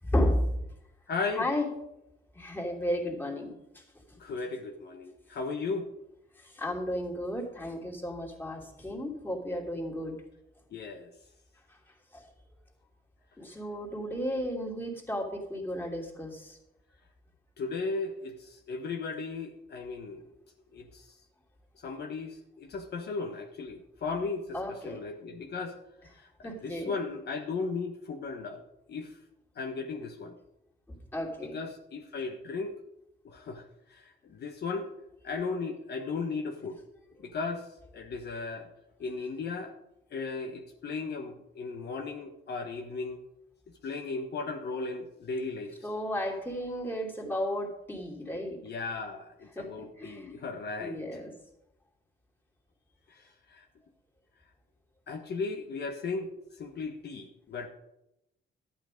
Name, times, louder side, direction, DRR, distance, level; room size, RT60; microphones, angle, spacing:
voice 1, 0.0-0.5 1.3-1.7 2.3-3.8 4.1-4.2 6.4-10.2 12.1-12.3 13.4-16.6 24.5-25.0 26.4-26.9 30.9-31.6 45.8-48.6 49.5-49.7 50.0-50.3 50.8-51.3, left 1 dB, 10° left, -1 dB, 2.8 m, -33 dB
voice 2, 1.1-1.5 4.2-5.9 10.7-11.1 17.6-20.3 20.7-21.1 21.8-25.8 26.1-28.6 28.9-29.2 29.6-30.3 31.5-32.7 33.2-33.6 33.9-34.9 35.2-36.8 37.2-37.7 37.9-38.7 39.0-39.7 40.1-43.2 43.8-45.7 48.6-51.0 53.5-53.6 55.1-56.3 56.6-57.7, left 4 dB, 55° left, 3 dB, 1.2 m, -36 dB
12.0 x 8.8 x 5.2 m, 0.86 s
cardioid pair, 90°, 20 cm